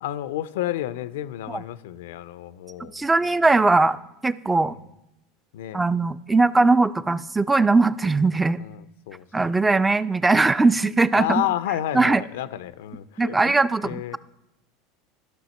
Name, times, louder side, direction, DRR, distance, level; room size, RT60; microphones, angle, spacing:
voice 1, 0.0-3.4 5.5-5.8 8.6-9.3 11.2-13.6 13.8-14.2, left 13 dB, 75° left, 15 dB, 0.4 m, -31 dB
voice 2, 2.9-4.0 4.2-4.8 5.7-8.6 9.3-11.4 11.9-12.2 13.2-14.2, right 3 dB, 15° right, 15 dB, 0.3 m, -20 dB
13.0 x 5.7 x 4.2 m, 0.91 s
hypercardioid pair, 85°, 0 cm